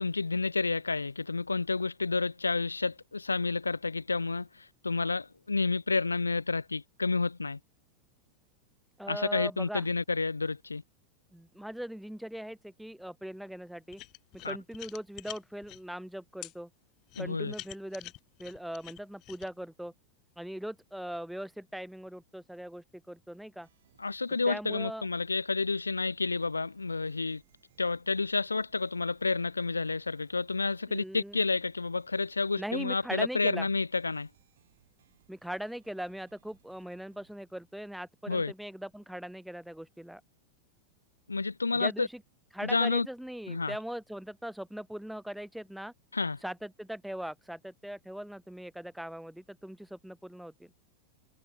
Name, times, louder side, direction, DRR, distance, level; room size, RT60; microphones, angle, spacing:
voice 1, 0.0-7.6 9.1-10.8 14.4-14.6 17.2-17.5 24.0-27.4 27.8-34.3 38.3-38.5 41.3-42.1 42.6-43.1 43.5-43.8 46.1-46.4, left 3 dB, 80° left, 0.6 m, -30 dB
voice 2, 9.0-9.9 11.3-14.0 14.4-16.7 17.2-18.1 18.4-19.9 20.4-23.7 24.5-25.1 30.9-31.4 32.6-33.7 35.3-40.2 41.8-42.2 42.5-45.9 46.4-50.5, equal, ahead, 0.3 m, -40 dB
sound 1, 13.9-15.8 16.4-16.5 17.1-19.5, left 19 dB, 40° left, 3.0 m, -46 dB
sound 2, 23.6-37.4, right 11 dB, 60° right, 6.1 m, -68 dB
figure-of-eight pair, 90°, 0 cm